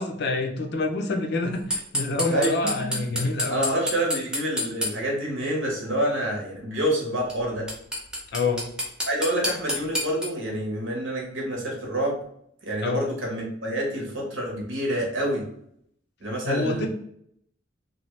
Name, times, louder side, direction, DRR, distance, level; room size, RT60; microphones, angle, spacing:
voice 1, 0.0-3.6 8.3-8.6 12.8-13.1 16.4-16.9, left 3 dB, 60° left, 4 dB, 0.5 m, -27 dB
sound 1, 1.7-4.9 7.3-7.4 7.7-10.3, left 1 dB, 5° right, 0.6 m, -27 dB
voice 2, 3.5-7.7 9.0-12.2 12.6-15.4 16.2-16.9, right 1 dB, 85° right, -2 dB, 1.0 m, -27 dB
2.8 x 2.2 x 3.0 m, 0.70 s
head